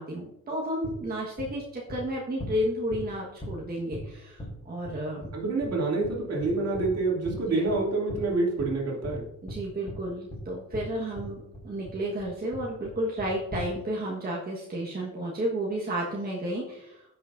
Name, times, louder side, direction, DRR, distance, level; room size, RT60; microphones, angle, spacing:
voice 1, 0.0-5.2 7.5-7.6 9.4-17.0, equal, 30° right, -3 dB, 1.5 m, -32 dB
sound 1, 0.8-0.9 1.4-1.5 1.9-2.0 2.4-2.5 2.9-3.0 3.4-3.5 3.9-4.0 4.4-4.5 4.8-4.9 5.2-5.3 5.6-5.7 6.0-6.1 6.4-6.9 7.2-7.4 7.7-7.8 8.1-8.2 8.6-8.7 9.0-9.2 9.5-9.6 9.9-10.0 10.3-10.4 10.7-10.8 11.2-11.3 11.5-11.9 12.2-12.3 12.5-12.9 13.2-13.7, left 1 dB, 20° left, 3.5 m, -38 dB
voice 2, 5.3-9.3, right 3 dB, 60° right, -2 dB, 2.7 m, -27 dB
15.5 x 6.0 x 2.6 m, 0.86 s
cardioid pair, 125°, 29 cm